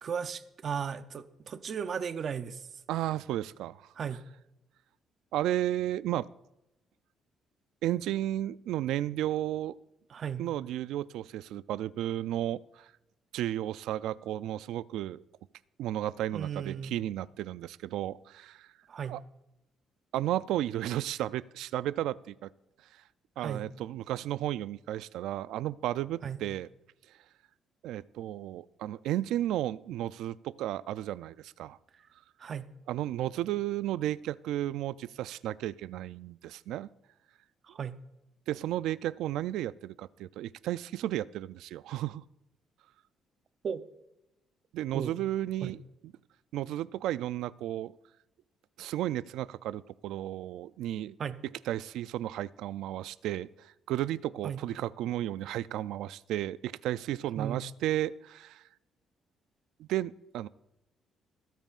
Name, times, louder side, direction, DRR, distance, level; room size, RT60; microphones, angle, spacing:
voice 1, 0.0-2.7 3.9-4.2 10.1-10.5 16.3-16.9 18.9-19.2 23.4-23.7 26.2-26.4 32.4-32.7 37.6-38.0 43.6-43.8 44.9-45.1 45.6-45.7 51.2-51.4 54.4-54.6 57.4-57.6, right 7 dB, 40° right, 11 dB, 0.6 m, -35 dB
voice 2, 2.9-3.8 5.3-6.3 7.8-9.8 10.4-12.9 13.3-15.2 15.8-18.7 19.1-19.2 20.1-22.5 23.4-26.7 27.8-31.8 32.9-36.9 38.5-42.2 44.7-45.8 46.5-47.9 48.8-51.2 51.7-58.6 59.8-60.5, right 13 dB, 85° right, 17 dB, 0.3 m, -33 dB
25.0 x 9.0 x 2.5 m, 0.90 s
cardioid pair, 170°, 0 cm